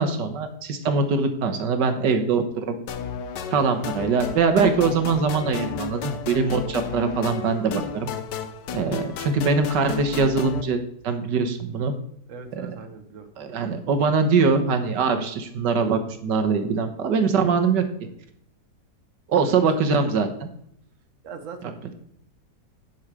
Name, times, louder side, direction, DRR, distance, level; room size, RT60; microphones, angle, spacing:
voice 1, 0.0-2.8 3.5-8.1 8.7-11.9 12.5-12.7 13.4-17.8 19.3-20.5, right 4 dB, 75° right, 6 dB, 1.7 m, -22 dB
sound 1, 2.9-10.6, left 7 dB, 75° left, 1.4 m, -33 dB
voice 2, 12.3-13.5 19.4-19.6 21.2-21.9, right 5 dB, 50° right, 6 dB, 1.3 m, -41 dB
10.5 x 5.6 x 4.8 m, 0.70 s
omnidirectional pair, 1.9 m